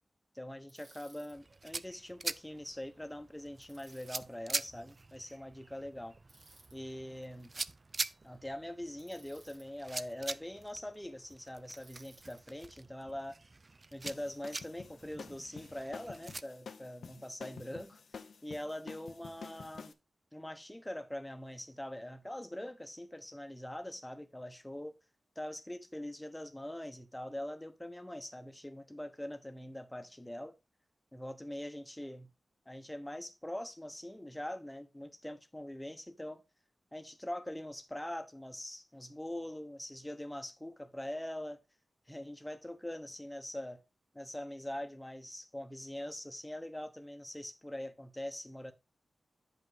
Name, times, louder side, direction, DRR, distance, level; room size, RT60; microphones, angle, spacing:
voice 1, 0.3-6.2 6.7-7.5 8.2-13.4 13.9-18.0 18.4-19.9 20.3-24.9 25.4-30.5 31.1-32.3 32.7-36.4 36.9-41.6 42.1-43.8 44.1-48.7, left 1 dB, 10° left, 1.0 m, -43 dB
Bicycle, 0.7-1.4 3.6-4.3 6.3-6.8 9.0-9.7 11.8-12.4, right 3 dB, 75° right, 2.3 m, -61 dB
sound 1, 1.3-16.4, right 3 dB, 35° right, 0.4 m, -44 dB
sound 2, 14.0-19.9, left 5 dB, 85° left, 0.7 m, -49 dB
8.8 x 5.4 x 3.9 m
wide cardioid pair, 100°, 0 cm